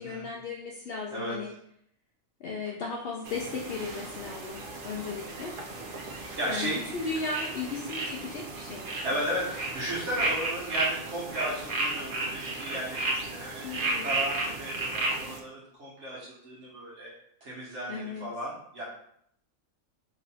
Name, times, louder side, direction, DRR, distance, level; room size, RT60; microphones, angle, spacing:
voice 1, 0.0-1.5 2.4-4.6 4.8-5.5 6.5-8.9 13.6-14.2 17.9-18.3, left 4 dB, 75° left, -2 dB, 0.5 m, -36 dB
sound 1, 3.3-15.4, right 2 dB, 85° right, 0.4 m, -34 dB
voice 2, 6.3-6.8 9.0-13.6 14.0-17.1 17.4-18.8, right 1 dB, 55° right, -6 dB, 1.2 m, -35 dB
3.0 x 2.7 x 4.1 m, 0.71 s
omnidirectional pair, 1.5 m